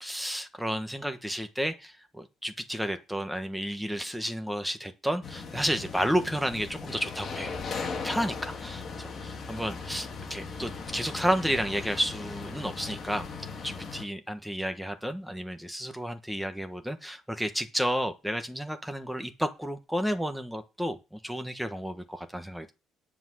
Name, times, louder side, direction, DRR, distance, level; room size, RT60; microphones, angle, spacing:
voice 1, 0.0-13.3 13.6-22.7, equal, ahead, 1.3 m, -32 dB
sound 1, 5.2-14.0, left 4 dB, 35° left, 2.3 m, -38 dB
10.0 x 5.9 x 6.3 m
cardioid pair, 155°, 0 cm